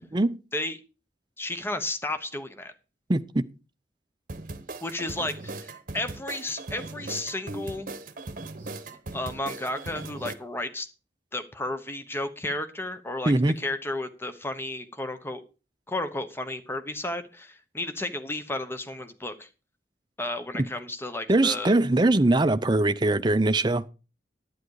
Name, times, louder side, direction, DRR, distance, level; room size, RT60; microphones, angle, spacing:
voice 1, 1.4-2.7 4.8-7.9 9.1-10.9 11.3-15.4 15.9-19.5 20.2-21.7, left 2 dB, 15° left, 1.0 m, -33 dB
voice 2, 3.1-3.5 13.3-13.5 20.5-20.7 21.3-23.8, right 2 dB, 25° right, 0.6 m, -22 dB
sound 1, 4.3-10.4, right 2 dB, 50° right, 1.0 m, -38 dB
11.5 x 9.4 x 4.8 m
head